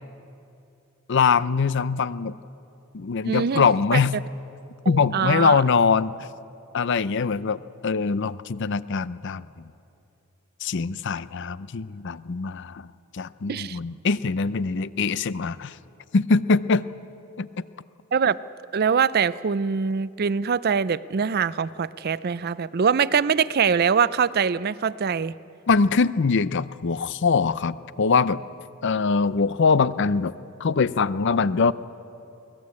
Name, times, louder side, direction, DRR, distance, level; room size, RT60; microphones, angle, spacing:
voice 1, 1.1-2.4 2.9-4.1 4.9-6.1 6.7-9.7 10.6-12.9 13.1-15.8 16.1-16.9 17.4-17.5 25.7-28.4 28.8-30.3 30.6-31.7, left 5 dB, 55° left, 17 dB, 0.5 m, -23 dB
voice 2, 3.3-3.7 3.9-4.0 4.9-5.6 13.5-13.8 18.1-18.4 18.7-25.3, right 6 dB, 45° right, 18 dB, 0.4 m, -23 dB
23.5 x 18.0 x 8.5 m, 2.7 s
head